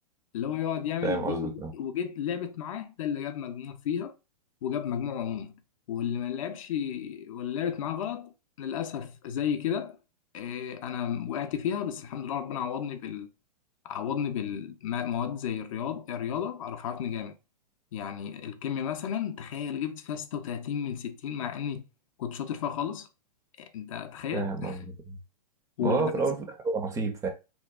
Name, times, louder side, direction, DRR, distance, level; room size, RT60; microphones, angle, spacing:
voice 1, 0.3-4.1 4.6-5.5 5.9-10.0 10.3-13.3 13.8-17.4 17.9-21.8 22.2-23.1 23.6-24.8 25.8-26.3, left 8 dB, 55° left, 0.4 m, -33 dB
voice 2, 1.0-1.7 24.3-25.2 25.8-27.3, right 4 dB, 15° right, 0.4 m, -30 dB
2.8 x 2.2 x 2.2 m
hypercardioid pair, 110°, 21 cm